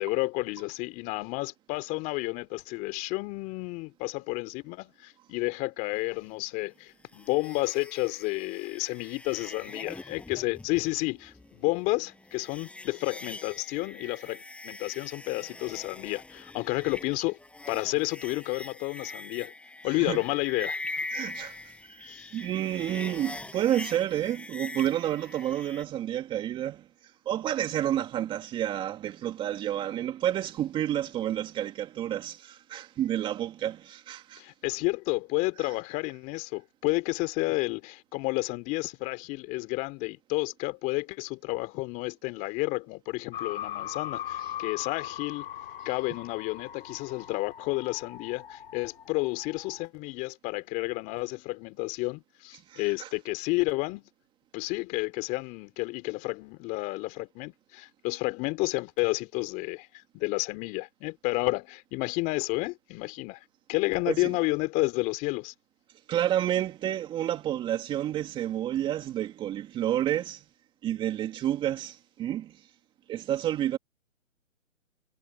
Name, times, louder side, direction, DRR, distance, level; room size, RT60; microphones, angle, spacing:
voice 1, 0.0-17.4 17.7-19.5 19.8-21.0 22.1-22.3 34.4-45.5 45.8-54.0 54.5-59.9 60.1-65.5, left 23 dB, 20° left, 3.0 m, -31 dB
sound 1, 7.1-25.8, left 2 dB, 5° left, 6.0 m, -42 dB
voice 2, 19.9-20.2 21.1-34.4 35.6-35.7 52.7-53.1 64.1-64.3 66.1-70.4 70.8-72.7 73.1-73.8, right 11 dB, 10° right, 2.2 m, -30 dB
sound 2, 43.3-49.8, left 11 dB, 45° left, 3.3 m, -40 dB
hypercardioid pair, 150°, 39 cm